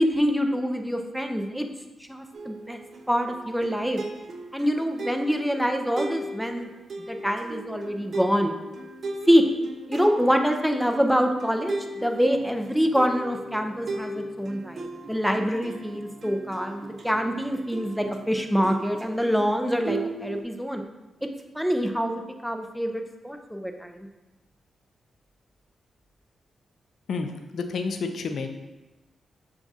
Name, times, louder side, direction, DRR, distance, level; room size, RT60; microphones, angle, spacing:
voice 1, 0.0-1.7 2.0-2.8 3.1-4.0 4.5-6.7 7.0-8.5 9.3-9.4 9.9-20.8 21.5-24.1, equal, ahead, 4 dB, 0.5 m, -25 dB
sound 1, 2.3-19.5 19.9-20.4, right 2 dB, 60° right, 0.4 m, -38 dB
voice 2, 27.1-28.5, left 4 dB, 70° left, 6 dB, 0.4 m, -30 dB
6.8 x 2.4 x 2.7 m, 1.1 s
supercardioid pair, 55°, 0 cm